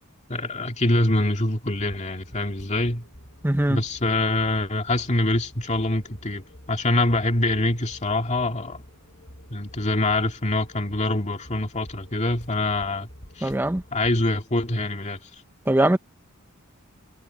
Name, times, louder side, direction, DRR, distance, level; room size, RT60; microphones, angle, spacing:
voice 1, 0.3-3.1 3.7-8.8 9.5-13.1 13.4-13.5 13.9-15.3, left 2 dB, 35° left, 2.3 m, -25 dB
sound 1, 1.7-14.4, equal, 50° left, 6.5 m, -48 dB
voice 2, 3.4-3.8 13.4-13.8 15.7-16.0, right 1 dB, 10° right, 0.7 m, -21 dB
head